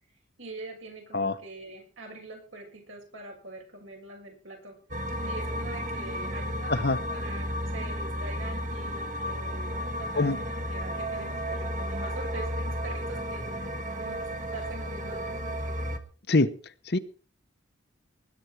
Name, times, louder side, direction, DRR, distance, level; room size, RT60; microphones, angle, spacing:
voice 1, 0.4-4.8 5.2-6.8 7.1-13.7 14.0-15.8, right 2 dB, 80° right, 1 dB, 7.1 m, -44 dB
voice 2, 1.1-1.4 6.7-7.0 10.1-10.4 16.3-16.5 16.8-17.0, left 2 dB, 55° left, 11 dB, 0.9 m, -24 dB
sound 1, 4.9-16.0, equal, 40° right, 1.4 m, -33 dB
20.5 x 9.6 x 4.6 m, 0.40 s
head